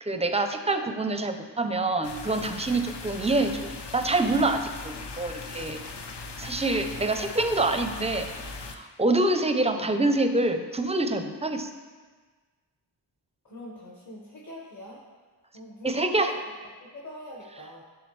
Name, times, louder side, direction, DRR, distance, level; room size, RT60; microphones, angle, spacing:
voice 1, 0.0-5.8 6.4-8.3 8.6-11.7 15.8-16.3, right 2 dB, 15° right, 7 dB, 0.4 m, -26 dB
sound 1, 2.0-8.8, left 4 dB, 65° left, 0.7 m, -39 dB
voice 2, 13.4-15.0 15.5-16.3 16.8-17.8, left 1 dB, 40° left, -3 dB, 1.1 m, -43 dB
10.5 x 3.6 x 3.1 m, 1.4 s
wide cardioid pair, 60°, 45 cm